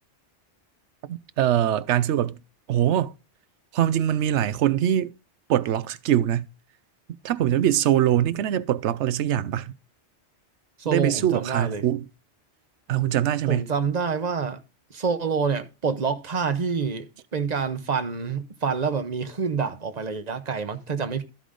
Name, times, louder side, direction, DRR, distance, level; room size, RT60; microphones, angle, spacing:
voice 1, 1.1-2.4 2.7-3.1 3.7-5.1 5.5-6.5 7.2-9.7 10.9-12.0 12.9-13.7, right 11 dB, 80° right, 0.9 m, -23 dB
voice 2, 10.8-11.8 13.5-14.6 14.9-17.1 17.3-21.2, right 5 dB, 40° right, 1.0 m, -27 dB
13.5 x 5.0 x 3.8 m
omnidirectional pair, 1.2 m